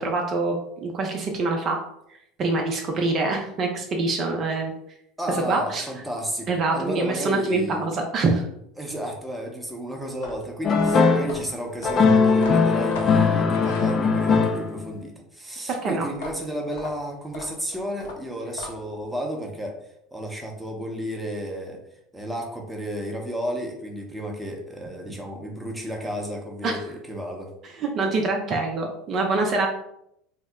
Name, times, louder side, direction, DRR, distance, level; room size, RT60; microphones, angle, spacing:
voice 1, 0.0-1.8 2.4-4.7 5.5-5.9 6.5-8.4 15.7-16.1 26.6-26.8 27.8-29.7, right 3 dB, 45° right, 2 dB, 0.5 m, -25 dB
voice 2, 5.2-7.9 8.8-21.8 22.1-27.5, equal, 5° right, 0 dB, 0.7 m, -33 dB
sound 1, 10.1-14.4 16.1-19.0, left 3 dB, 75° left, 0.7 m, -39 dB
sound 2, 10.6-11.3 11.8-14.9, left 4 dB, 40° left, 0.4 m, -19 dB
2.8 x 2.0 x 3.5 m, 0.77 s
hypercardioid pair, 80°, 0 cm